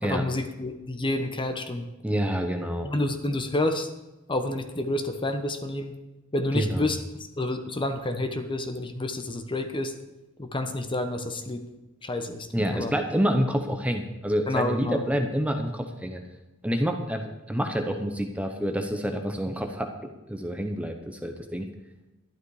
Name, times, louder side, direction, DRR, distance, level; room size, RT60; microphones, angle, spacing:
voice 1, 0.0-1.9 2.8-3.9 4.3-5.9 6.3-7.0 7.4-9.9 10.4-11.7 12.0-12.9 14.5-15.0, left 1 dB, 25° left, 7 dB, 1.0 m, -29 dB
voice 2, 2.0-2.9 6.5-6.9 12.5-16.2 16.6-21.7, equal, 5° right, 5 dB, 0.8 m, -28 dB
12.0 x 11.5 x 4.8 m, 1.0 s
head